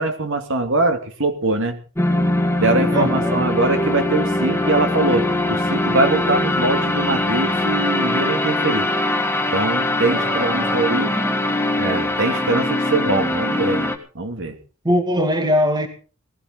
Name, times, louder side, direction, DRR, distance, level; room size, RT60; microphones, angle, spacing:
voice 1, 0.0-1.8 2.6-8.9 9.5-11.1 11.8-13.9 14.1-14.5, right 2 dB, 60° right, 2.7 m, -22 dB
sound 1, 1.9-14.0, left 1 dB, 10° left, 1.7 m, -21 dB
sound 2, 2.1-7.8, left 1 dB, 65° left, 1.8 m, -37 dB
voice 2, 2.9-3.5 10.1-11.4 14.8-15.9, equal, 20° right, 2.3 m, -22 dB
19.5 x 15.5 x 4.0 m
head